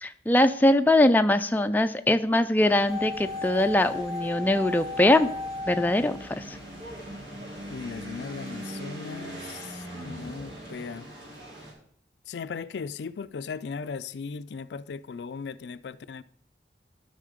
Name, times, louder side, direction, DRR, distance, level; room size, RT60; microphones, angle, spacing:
voice 1, 0.0-5.3 5.7-6.6, left 1 dB, 10° left, 0.4 m, -22 dB
sound 1, 2.6-11.7, right 1 dB, 85° right, 4.2 m, -41 dB
sound 2, 2.9-7.0 7.2-7.3, left 2 dB, 35° right, 2.2 m, -35 dB
voice 2, 7.7-11.1 12.3-16.2, left 5 dB, 80° left, 0.4 m, -37 dB
12.0 x 5.6 x 5.1 m
head